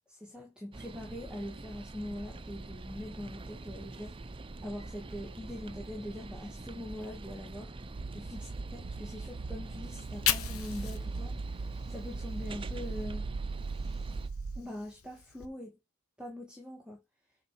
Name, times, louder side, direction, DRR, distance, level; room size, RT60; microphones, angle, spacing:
voice 1, 0.1-4.2 4.6-7.7 8.1-11.4 11.9-13.3 14.5-15.8 16.2-17.0, left 1 dB, 5° right, 1.6 m, -42 dB
sound 1, 0.7-14.3, right 2 dB, 25° right, 0.6 m, -45 dB
sound 2, 7.9-14.6, right 4 dB, 80° right, 0.6 m, -39 dB
Fire, 9.9-13.0 13.4-15.5, left 11 dB, 65° left, 1.0 m, -38 dB
6.5 x 4.3 x 6.5 m
head